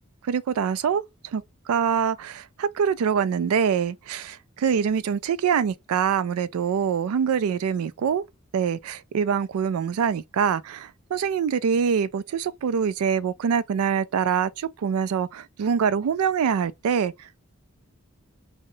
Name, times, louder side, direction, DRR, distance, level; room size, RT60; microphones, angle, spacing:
voice 1, 0.3-1.0 1.3-1.4 1.7-8.2 8.5-17.4, right 7 dB, 90° right, 0.3 m, -24 dB
2.7 x 2.1 x 3.8 m
head